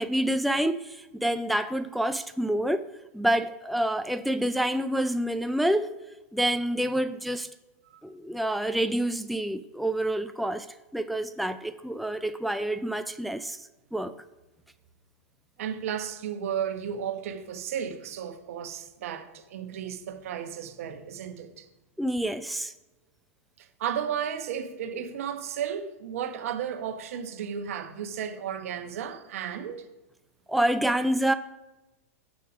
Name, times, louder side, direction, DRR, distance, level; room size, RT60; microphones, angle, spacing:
voice 1, 0.0-2.8 3.1-5.9 6.3-7.5 8.0-10.7 10.9-14.1 22.0-22.7 30.5-31.3, right 1 dB, ahead, 0.4 m, -27 dB
voice 2, 15.6-21.7 23.6-29.8, right 8 dB, 70° right, 1.0 m, -34 dB
6.7 x 6.3 x 6.2 m
hypercardioid pair, 115°, 8 cm